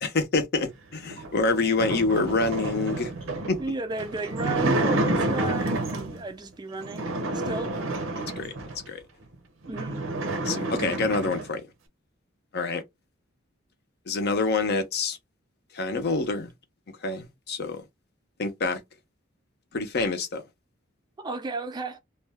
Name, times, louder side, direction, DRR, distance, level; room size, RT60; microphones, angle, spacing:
voice 1, 0.0-3.1 3.5-3.6 8.4-8.5 8.9-9.0 10.4-11.7 12.5-12.8 14.1-15.2 15.7-16.5 17.0-17.9 18.4-18.8 19.7-20.4, left 3 dB, 55° left, 0.6 m, -26 dB
sound 1, 1.1-6.2 6.8-8.9 9.3-9.4 9.6-11.5, right 2 dB, 70° right, 0.7 m, -29 dB
voice 2, 3.6-7.8 9.7-10.1 21.2-22.0, right 3 dB, 20° right, 0.4 m, -34 dB
2.5 x 2.2 x 3.3 m
head